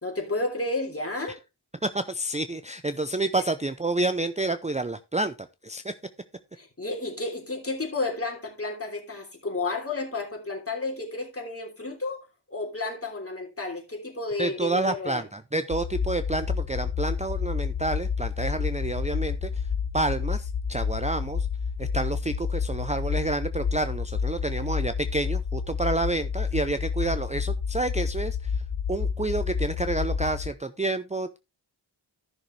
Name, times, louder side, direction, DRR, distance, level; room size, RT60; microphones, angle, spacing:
voice 1, 0.0-1.4 6.6-15.2, left 3 dB, 30° left, 3.2 m, -32 dB
voice 2, 1.8-5.3 5.6-5.9 14.4-19.7 19.9-21.5 21.8-28.6 28.9-31.4, right 2 dB, 15° right, 0.6 m, -29 dB
sound 1, 15.7-30.5, left 6 dB, 65° left, 1.2 m, -29 dB
14.0 x 6.4 x 3.2 m
wide cardioid pair, 65°, 44 cm